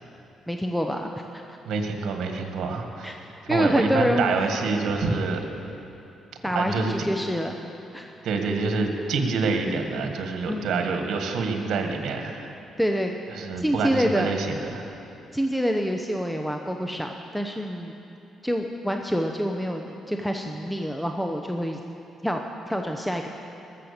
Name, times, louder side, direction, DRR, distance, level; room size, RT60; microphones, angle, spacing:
voice 1, 0.5-1.4 3.0-3.2 3.5-4.3 6.4-7.6 7.9-8.1 10.5-11.0 12.8-13.1 13.6-14.3 15.3-18.0 18.4-21.8 22.2-23.3, equal, ahead, 3 dB, 0.8 m, -27 dB
voice 2, 1.6-5.4 6.5-6.9 8.2-12.5 13.3-14.9, right 4 dB, 75° right, 4 dB, 1.6 m, -27 dB
20.5 x 7.6 x 6.6 m, 2.8 s
cardioid pair, 90°, 0 cm